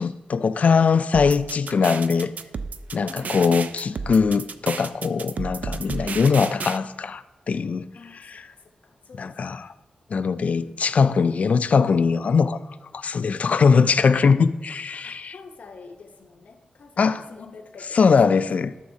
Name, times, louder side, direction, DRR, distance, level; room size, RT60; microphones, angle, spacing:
voice 1, 0.0-2.3 2.9-7.8 8.1-8.5 9.1-9.7 10.1-12.6 12.9-15.4 17.0-17.2 17.9-18.7, left 5 dB, 60° left, 0.3 m, -21 dB
sound 1, 1.1-6.8, right 5 dB, 75° right, 0.3 m, -32 dB
voice 2, 2.9-3.5 7.9-9.7 10.4-10.8 13.4-14.1 15.0-18.4, left 4 dB, 75° left, 0.9 m, -46 dB
12.5 x 7.1 x 2.7 m
wide cardioid pair, 115°, 3 cm